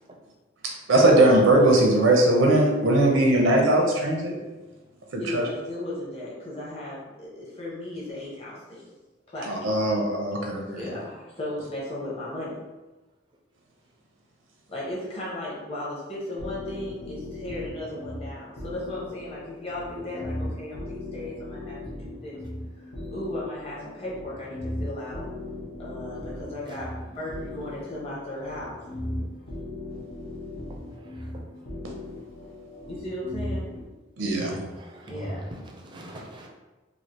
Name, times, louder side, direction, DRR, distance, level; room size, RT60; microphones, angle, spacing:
voice 1, 0.9-4.4 5.1-5.5 9.5-10.8 34.2-34.5, right 1 dB, 85° right, 0 dB, 0.6 m, -20 dB
voice 2, 5.2-8.9 9.3-9.7 10.7-12.6 14.7-22.4 23.1-25.3 25.8-28.8 32.9-33.7 35.1-35.4, left 1 dB, 30° left, -6 dB, 0.9 m, -36 dB
sound 1, 16.4-33.8, left 1 dB, 65° left, 0.8 m, -38 dB
voice 3, 34.4-35.4 35.8-36.5, right 1 dB, 25° right, 0 dB, 0.4 m, -39 dB
3.1 x 2.4 x 2.8 m, 1.1 s
head